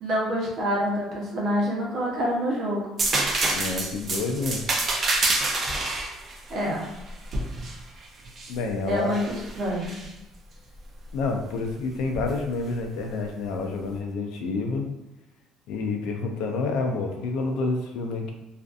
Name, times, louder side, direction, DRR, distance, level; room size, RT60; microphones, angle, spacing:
voice 1, 0.0-2.9 6.5-6.9 8.8-10.0, equal, 50° right, -3 dB, 0.8 m, -27 dB
sound 1, 3.0-8.6 9.1-10.1 12.1-12.3, right 2 dB, 30° right, 0.4 m, -27 dB
voice 2, 3.5-4.6 8.5-9.2 11.1-14.9 15.7-18.3, left 3 dB, 80° left, 3 dB, 0.4 m, -28 dB
2.5 x 2.4 x 2.4 m, 0.97 s
cardioid pair, 140°, 0 cm